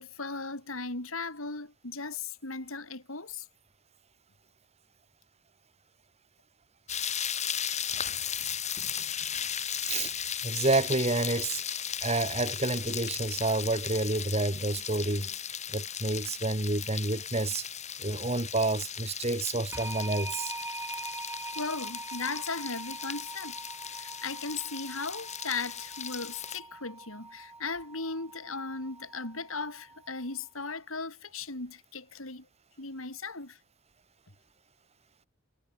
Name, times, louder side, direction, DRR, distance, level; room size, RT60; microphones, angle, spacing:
voice 1, 0.0-3.4 21.5-23.5 24.0-32.4 32.8-33.6, left 4 dB, 80° left, 4.7 m, -37 dB
sound 1, 6.9-26.6, left 8 dB, 35° left, 7.3 m, -36 dB
voice 2, 9.8-10.1 10.4-11.6 12.0-15.3 15.7-17.6 18.0-20.5, right 2 dB, 30° right, 2.1 m, -29 dB
sound 2, 19.7-30.3, right 2 dB, 10° right, 7.0 m, -43 dB
head